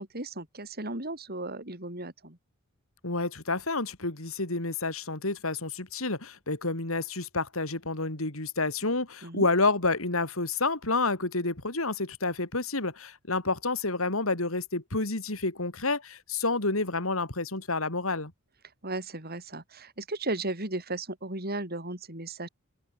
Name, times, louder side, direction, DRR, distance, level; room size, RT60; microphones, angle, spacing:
voice 1, 0.0-2.4 9.2-9.5 18.8-22.5, right 2 dB, 45° right, 6.8 m, -35 dB
voice 2, 3.0-18.3, left 3 dB, 70° left, 3.7 m, -29 dB
open air
head